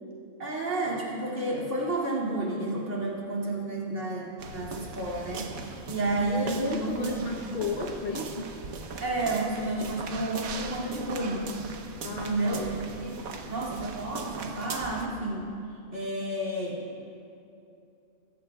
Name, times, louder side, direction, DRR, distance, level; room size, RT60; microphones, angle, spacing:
voice 1, 0.4-7.3 9.0-11.5 12.1-12.6 13.0-13.2 13.5-15.5 15.9-17.1, right 2 dB, 60° right, -3 dB, 2.9 m, -31 dB
sound 1, 4.4-15.1, right 4 dB, 85° right, 1.4 m, -39 dB
voice 2, 6.0-8.4 12.0-12.8 13.2-13.4, left 2 dB, 45° left, -3 dB, 1.1 m, -33 dB
21.0 x 16.0 x 2.3 m, 2.7 s
omnidirectional pair, 1.4 m